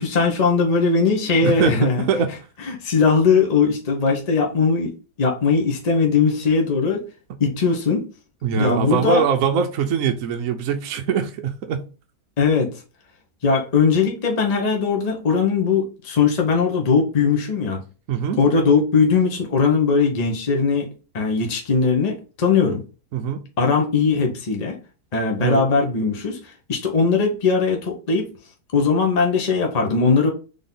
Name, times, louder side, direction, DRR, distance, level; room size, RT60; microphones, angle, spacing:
voice 1, 0.0-2.0 2.6-4.9 5.2-7.1 7.4-8.1 8.6-9.2 12.4-12.7 13.4-17.8 18.4-20.9 21.1-22.8 23.6-24.8 25.1-26.4 26.7-28.3 28.7-30.3, left 5 dB, 35° left, 0.7 m, -19 dB
voice 2, 1.4-2.3 8.4-11.8 18.1-18.4 23.1-23.4 25.4-25.6, right 6 dB, 65° right, 0.9 m, -22 dB
4.0 x 3.4 x 3.8 m
omnidirectional pair, 1.8 m